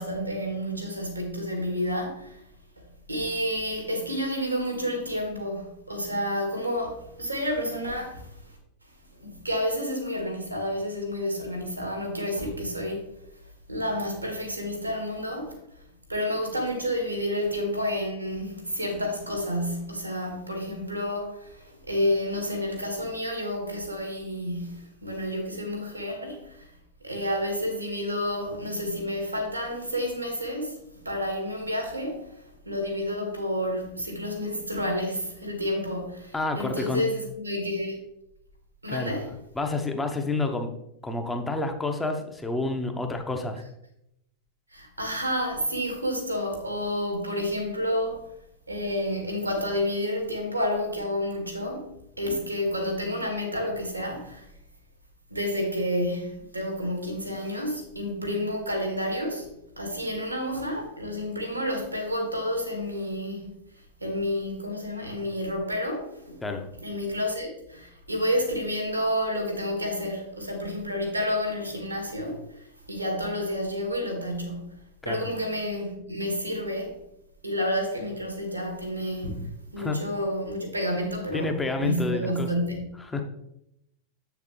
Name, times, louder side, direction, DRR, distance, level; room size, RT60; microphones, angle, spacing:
voice 1, 0.0-2.4 3.1-8.3 9.2-13.1 13.7-15.6 16.1-26.7 27.0-32.3 32.7-38.0 38.8-39.3 44.7-48.2 48.7-54.5 55.3-59.5 59.8-63.5 64.0-66.4 66.8-72.4 72.9-74.7 75.1-77.0 77.4-83.0, equal, 85° right, 1.8 m, -30 dB
voice 2, 36.3-37.0 38.9-39.1 39.6-40.7 41.0-43.6 66.4-66.6 75.0-75.2 79.8-80.0 81.3-82.5 83.1-83.2, left 3 dB, 10° left, 1.0 m, -29 dB
7.4 x 6.8 x 3.2 m
figure-of-eight pair, 90°, 0 cm